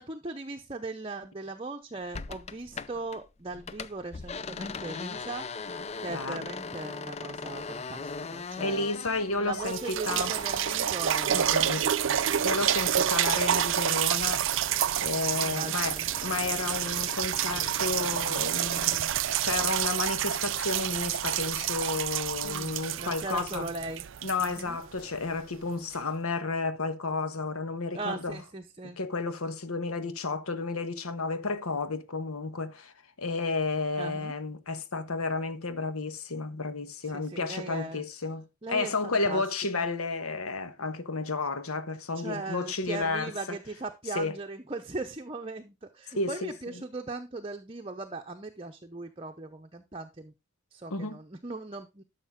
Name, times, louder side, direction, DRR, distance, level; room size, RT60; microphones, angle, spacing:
voice 1, 0.0-5.5 6.0-8.9 9.4-11.4 11.8-12.2 14.8-15.1 15.4-16.1 22.4-24.0 24.4-24.8 27.9-29.0 34.0-34.3 37.0-38.0 38.6-39.4 39.7-39.9 42.1-50.3 50.7-52.0, right 3 dB, 25° right, 0.7 m, -39 dB
sound 1, 2.1-3.2 3.5-13.9 14.2-19.1, left 4 dB, 30° left, 0.4 m, -41 dB
voice 2, 6.1-6.4 8.6-10.3 11.3-11.8 12.4-14.6 15.0-23.7 24.2-28.4 29.0-32.9 33.2-43.6 44.1-44.4 46.1-46.5 50.9-51.2, left 3 dB, 80° left, 1.3 m, -32 dB
sound 2, 9.1-9.2 9.6-25.3 25.9-26.0, right 10 dB, 60° right, 0.4 m, -29 dB
12.0 x 6.6 x 3.7 m
head